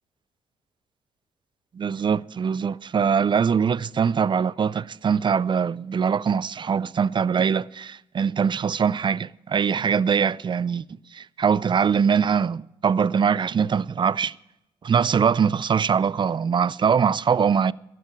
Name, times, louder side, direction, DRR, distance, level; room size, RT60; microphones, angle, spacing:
voice 1, 1.7-10.8 11.1-14.3 14.8-17.7, right 6 dB, 40° right, 0.4 m, -22 dB
11.5 x 11.0 x 9.1 m
supercardioid pair, 55°, 13 cm